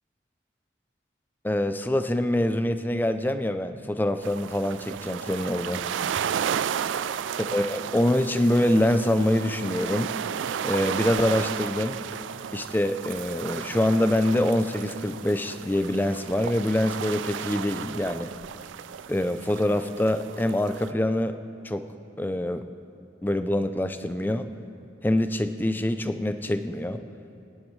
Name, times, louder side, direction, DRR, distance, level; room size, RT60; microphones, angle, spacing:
voice 1, 1.4-5.8 7.5-10.1 10.6-12.0 12.5-18.3 19.1-21.4 21.6-21.9 22.2-22.7 23.2-24.5 25.0-27.0, left 1 dB, 10° left, 9 dB, 0.4 m, -25 dB
sound 1, 4.2-20.9, right 8 dB, 85° right, 0.3 m, -33 dB
23.5 x 10.5 x 3.2 m, 2.7 s
head